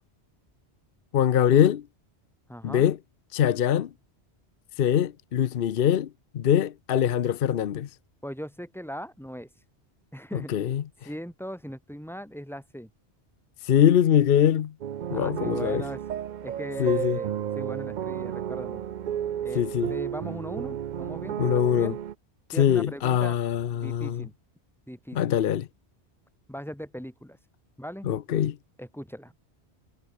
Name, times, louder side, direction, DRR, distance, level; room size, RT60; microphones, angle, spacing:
voice 1, 1.1-1.8 2.6-3.0 3.3-3.9 4.8-6.1 6.3-7.9 10.5-10.8 13.7-14.7 15.1-15.8 16.8-17.2 19.6-19.9 21.4-21.9 22.6-24.2 25.1-25.7 28.0-28.6, left 10 dB, 60° left, 0.8 m, -23 dB
voice 2, 2.5-2.9 8.2-9.5 10.1-10.5 11.0-12.9 15.0-16.0 16.4-18.8 19.4-19.6 19.9-22.0 22.5-23.4 23.7-24.3 24.9-25.4 26.5-27.4 27.8-28.1 28.8-29.3, equal, ahead, 2.5 m, -39 dB
sound 1, 14.8-22.1, right 10 dB, 55° right, 0.6 m, -32 dB
omnidirectional pair, 1.1 m